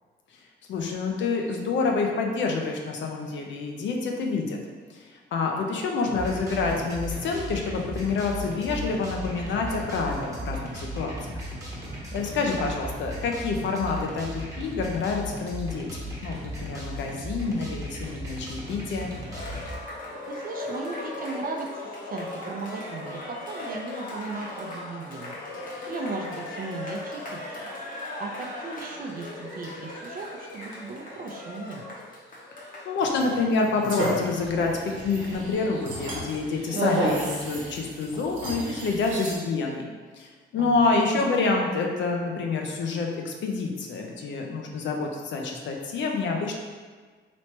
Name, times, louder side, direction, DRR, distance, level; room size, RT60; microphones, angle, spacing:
voice 1, 0.7-4.6 4.9-11.4 12.1-19.1 32.8-34.7 35.0-39.9 40.1-46.6, left 4 dB, 70° left, 1 dB, 0.6 m, -27 dB
sound 1, 6.0-19.8, equal, 15° right, 1.0 m, -36 dB
voice 2, 12.6-12.9 20.3-25.4 25.9-27.6 28.2-31.8 40.6-41.4, right 3 dB, 45° right, 1 dB, 0.5 m, -37 dB
Cheering, 19.2-33.1, left 2 dB, 45° left, 0.9 m, -38 dB
sound 2, 33.0-39.3, right 1 dB, 75° right, 1.0 m, -32 dB
3.1 x 3.0 x 2.9 m, 1.5 s
cardioid pair, 90°, 20 cm